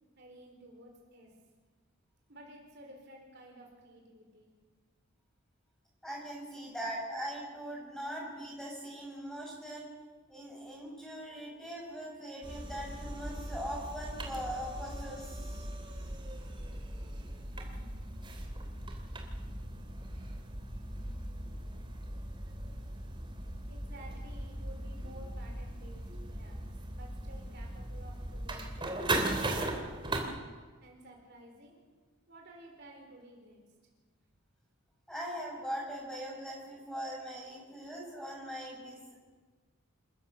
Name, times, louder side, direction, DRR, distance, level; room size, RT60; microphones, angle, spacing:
voice 1, 0.2-1.3 2.3-4.5 23.1-26.6 26.9-30.3 30.8-31.8 32.3-33.6, right 1 dB, 50° right, 0 dB, 4.0 m, -54 dB
voice 2, 6.0-9.9 10.3-15.7 35.1-39.2, equal, 5° left, -3 dB, 7.2 m, -41 dB
sound 1, 12.4-30.2, right 1 dB, 25° right, 3.0 m, -39 dB
27.5 x 14.5 x 7.1 m, 1.4 s
head